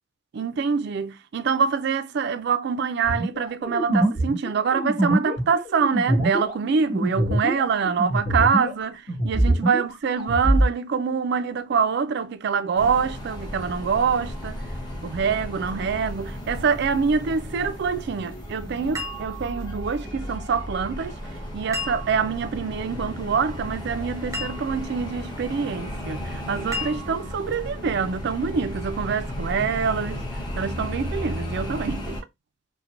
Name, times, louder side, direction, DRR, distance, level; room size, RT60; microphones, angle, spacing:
voice 1, 0.3-14.6 15.0-21.2 21.5-30.2 30.6-32.2, right 6 dB, 60° right, 0.4 m, -25 dB
sound 1, 3.0-8.8 9.1-10.7, right 1 dB, 50° left, 2.2 m, -23 dB
sound 2, 12.7-32.2, equal, 25° left, 1.1 m, -34 dB
sound 3, 19.0-19.9 21.7-22.5 24.3-25.0 26.7-27.5, left 1 dB, 15° right, 0.6 m, -35 dB
4.4 x 2.2 x 2.5 m
head